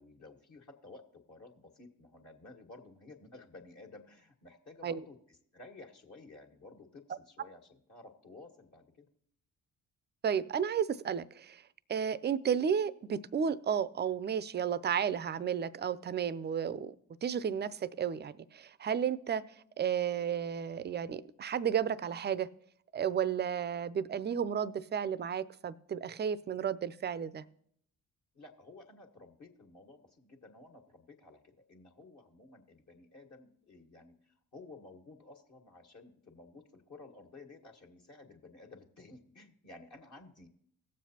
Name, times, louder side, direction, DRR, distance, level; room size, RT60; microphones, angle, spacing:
voice 1, 0.0-9.1 28.3-40.5, left 2 dB, 45° left, 0 dB, 1.7 m, -54 dB
voice 2, 10.2-11.6 11.9-16.9 17.2-19.4 19.8-22.5 22.9-27.4, right 8 dB, 25° right, 19 dB, 0.5 m, -33 dB
18.0 x 7.3 x 2.9 m, 0.67 s
hypercardioid pair, 45°, 40 cm